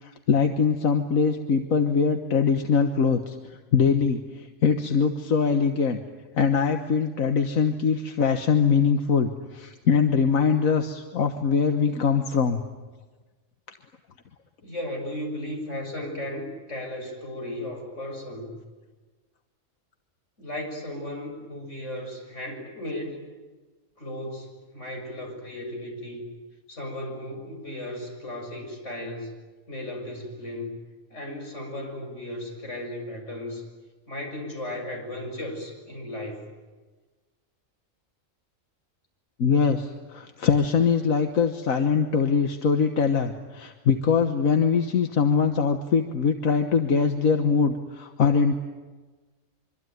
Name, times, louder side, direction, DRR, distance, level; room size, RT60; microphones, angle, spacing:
voice 1, 0.0-3.4 3.7-6.0 6.3-12.6 39.4-48.6, left 5 dB, 85° left, 6 dB, 1.7 m, -22 dB
voice 2, 14.6-18.6 20.4-23.2 24.0-26.2 26.7-29.3 29.7-30.7 31.1-33.6 34.1-36.5, left 1 dB, 60° left, 2 dB, 7.4 m, -35 dB
25.0 x 25.0 x 9.4 m, 1.3 s
omnidirectional pair, 1.4 m